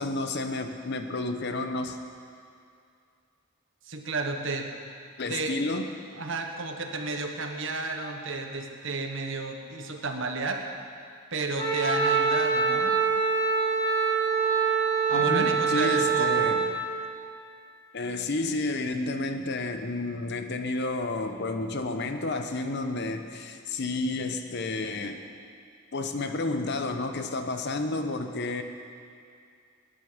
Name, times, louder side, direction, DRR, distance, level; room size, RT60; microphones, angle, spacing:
voice 1, 0.0-2.0 5.2-5.9 15.1-16.7 17.9-25.2 25.9-28.6, left 2 dB, 55° left, 7 dB, 0.9 m, -31 dB
voice 2, 3.9-4.7 5.3-5.6 6.1-10.6 11.3-12.9 15.1-16.5, right 3 dB, 65° right, 4 dB, 1.2 m, -32 dB
Wind instrument woodwind instrument, 11.6-16.7, right 5 dB, 20° left, 1.8 m, -24 dB
17.5 x 10.0 x 5.2 m, 2.4 s
head